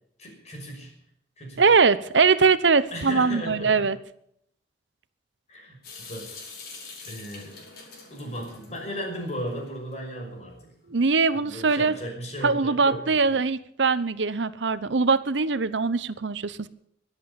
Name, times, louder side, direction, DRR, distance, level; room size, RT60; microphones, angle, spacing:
voice 1, 0.2-0.9 1.4-1.6 2.9-3.9 5.5-5.8 6.1-6.4 7.0-7.5 8.1-10.9 11.3-13.4, equal, 40° left, 1 dB, 6.0 m, -36 dB
voice 2, 1.6-4.0 10.9-12.0 12.4-16.7, right 4 dB, 90° right, 15 dB, 0.8 m, -22 dB
Water tap faucet / Sink (filling or washing) / Drip, 5.8-9.9, left 4 dB, 55° left, 5.2 m, -45 dB
22.5 x 8.4 x 7.0 m, 0.70 s
head